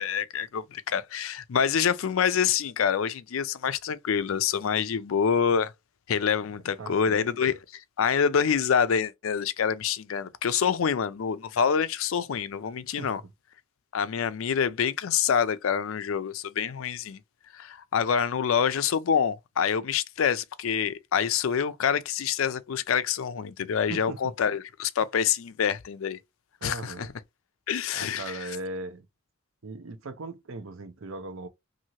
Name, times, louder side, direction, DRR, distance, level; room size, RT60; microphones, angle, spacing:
voice 1, 0.0-5.7 6.1-7.5 8.0-13.2 13.9-17.2 17.5-26.2 26.6-27.1 27.7-28.6, left 7 dB, 75° left, 0.4 m, -26 dB
voice 2, 6.8-7.3 13.0-13.1 23.9-24.3 26.6-27.1 27.9-29.0 29.6-31.5, right 2 dB, 70° right, 0.6 m, -38 dB
2.8 x 2.7 x 2.9 m
head